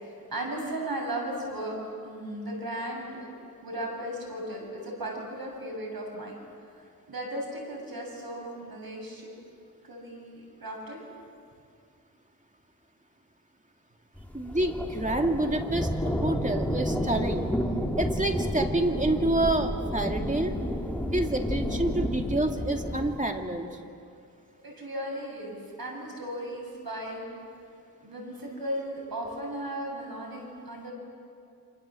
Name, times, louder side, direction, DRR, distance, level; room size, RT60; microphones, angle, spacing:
voice 1, 0.0-1.7 2.0-3.3 3.6-6.4 6.7-9.3 9.8-11.0 24.6-27.3 28.0-30.9, right 1 dB, 80° right, -1 dB, 7.4 m, -36 dB
sound 1, 14.2-23.2, equal, 5° left, 2.8 m, -30 dB
voice 2, 14.3-17.5 18.0-20.5 21.1-23.7, right 1 dB, 20° right, 3 dB, 2.3 m, -28 dB
29.5 x 26.5 x 7.7 m, 2.4 s
wide cardioid pair, 80°, 35 cm